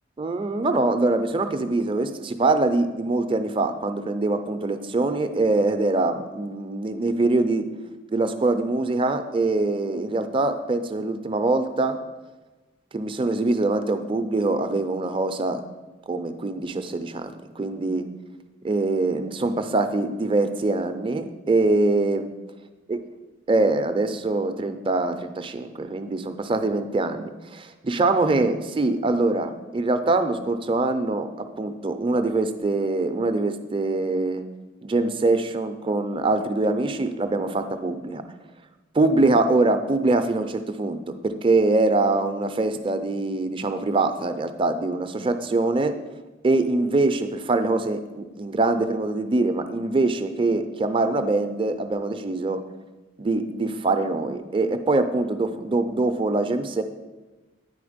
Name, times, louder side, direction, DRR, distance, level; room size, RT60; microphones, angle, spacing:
voice 1, 0.2-7.6 8.1-12.0 12.9-15.6 16.1-18.0 18.6-22.2 22.9-23.0 23.5-34.4 34.8-38.2 38.9-45.9 46.4-52.6 53.2-56.8, right 2 dB, 25° right, 8 dB, 0.5 m, -23 dB
9.4 x 4.6 x 5.1 m, 1.2 s
head